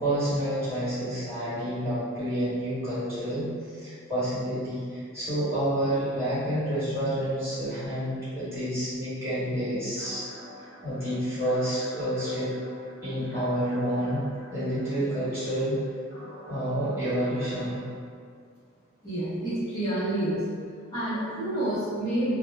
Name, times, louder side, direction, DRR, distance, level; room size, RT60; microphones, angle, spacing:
voice 1, 0.0-10.3 10.8-12.5 13.0-14.2 14.5-15.8 16.5-17.8, equal, 15° right, -15 dB, 1.2 m, -29 dB
sound 1, 10.0-17.8, equal, 70° left, 1.0 m, -46 dB
voice 2, 19.0-20.4 20.9-22.3, right 1 dB, 20° left, -16 dB, 0.8 m, -28 dB
2.2 x 2.2 x 3.1 m, 2.1 s
head